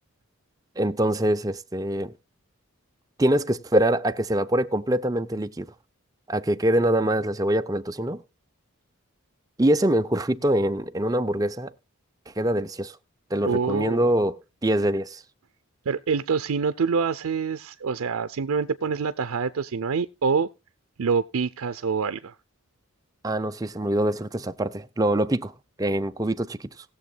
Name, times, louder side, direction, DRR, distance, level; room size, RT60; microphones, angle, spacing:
voice 1, 0.8-2.1 3.2-5.7 6.3-8.2 9.6-11.7 12.4-13.0 13.3-15.2 23.2-25.5 25.8-26.7, right 1 dB, 15° right, 0.5 m, -24 dB
voice 2, 13.5-14.0 15.9-20.5 21.0-22.3, right 5 dB, 85° right, 0.5 m, -26 dB
19.5 x 7.2 x 2.3 m
head